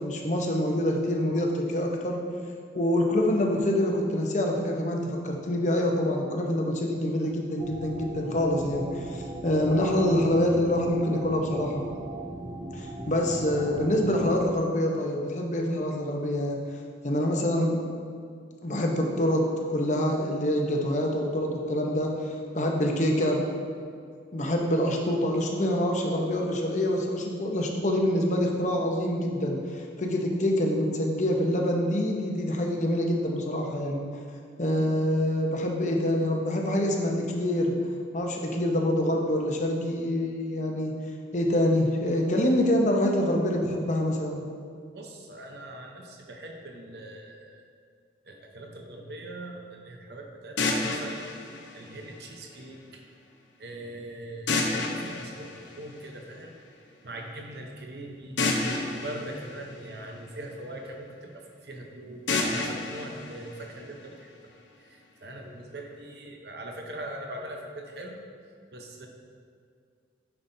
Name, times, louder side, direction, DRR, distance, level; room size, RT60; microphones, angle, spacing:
voice 1, 0.0-2.2 2.7-11.9 12.7-16.6 17.0-17.8 18.6-23.4 24.3-29.6 30.0-34.1 34.6-37.7 38.1-40.9 41.3-44.4, left 1 dB, 40° left, 1 dB, 0.8 m, -26 dB
sound 1, 7.6-14.4, right 2 dB, 25° right, 0.5 m, -37 dB
voice 2, 44.9-47.7 48.2-51.2 51.7-53.0 53.6-56.5 57.0-58.4 58.9-64.5 64.8-68.2 68.7-69.1, right 1 dB, 60° right, 2 dB, 0.8 m, -41 dB
sound 2, 50.6-52.6 54.5-56.4 58.4-60.6 62.3-64.3, left 3 dB, 85° left, 0.9 m, -31 dB
9.9 x 5.8 x 2.7 m, 2.3 s
head